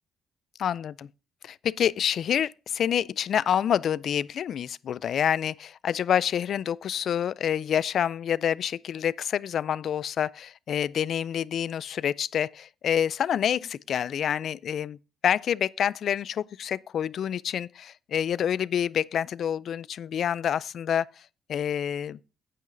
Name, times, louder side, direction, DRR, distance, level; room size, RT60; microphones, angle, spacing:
voice 1, 0.6-1.1 1.4-15.0 15.2-21.1 21.5-22.2, left 9 dB, 65° left, 0.3 m, -27 dB
11.5 x 9.2 x 2.6 m
cardioid pair, 90°, 0 cm